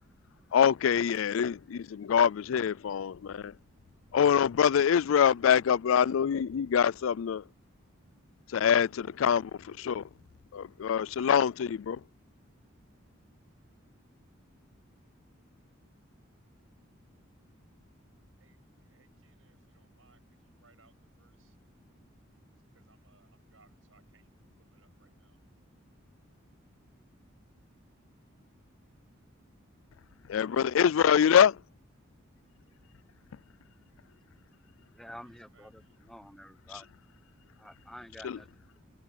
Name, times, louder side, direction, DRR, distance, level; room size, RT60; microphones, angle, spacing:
voice 1, 0.5-3.5 4.1-7.4 8.5-10.0 10.5-12.0 30.3-31.6 38.2-38.4, left 8 dB, 85° left, 0.4 m, -25 dB
voice 2, 18.4-21.6 22.5-24.3 24.6-25.5 35.2-36.0, right 4 dB, 80° right, 8.0 m, -67 dB
voice 3, 34.9-35.8 36.1-36.9 37.6-38.6, equal, ahead, 1.0 m, -48 dB
head